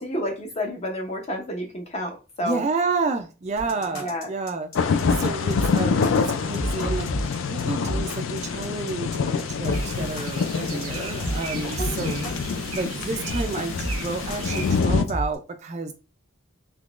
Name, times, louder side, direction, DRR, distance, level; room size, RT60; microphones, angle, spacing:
voice 1, 0.0-2.7 4.0-4.3 11.7-11.9 12.2-12.3, equal, 30° left, 2 dB, 0.7 m, -30 dB
voice 2, 2.4-15.9, right 3 dB, 30° right, 6 dB, 0.3 m, -30 dB
sound 1, 3.6-15.4, equal, 75° left, 0.9 m, -32 dB
sound 2, 4.8-15.1, left 5 dB, 60° left, 0.3 m, -26 dB
sound 3, 9.7-14.8, right 4 dB, 90° right, 0.8 m, -36 dB
3.6 x 2.9 x 2.4 m, 0.33 s
head